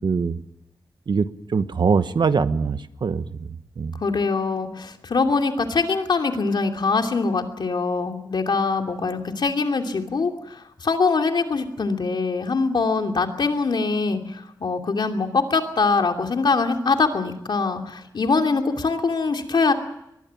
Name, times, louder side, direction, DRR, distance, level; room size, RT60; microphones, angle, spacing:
voice 1, 0.0-0.4 1.1-3.2 3.8-3.9, right 5 dB, 80° right, 11 dB, 1.2 m, -22 dB
voice 2, 4.0-19.7, left 4 dB, 75° left, 4 dB, 2.8 m, -23 dB
23.5 x 20.5 x 7.1 m, 0.81 s
wide cardioid pair, 85°, 8 cm